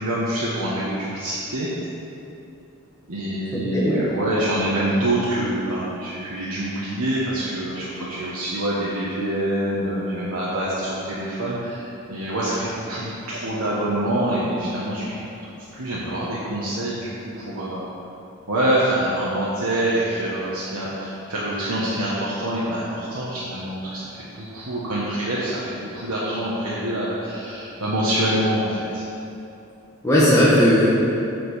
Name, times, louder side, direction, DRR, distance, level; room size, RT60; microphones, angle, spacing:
voice 1, 0.0-1.7 3.1-15.3 15.5-17.9 18.5-29.1, right 1 dB, 80° right, -8 dB, 1.3 m, -25 dB
voice 2, 3.5-4.0 30.0-30.9, equal, 15° left, -10 dB, 1.3 m, -17 dB
7.6 x 6.6 x 5.5 m, 2.8 s
head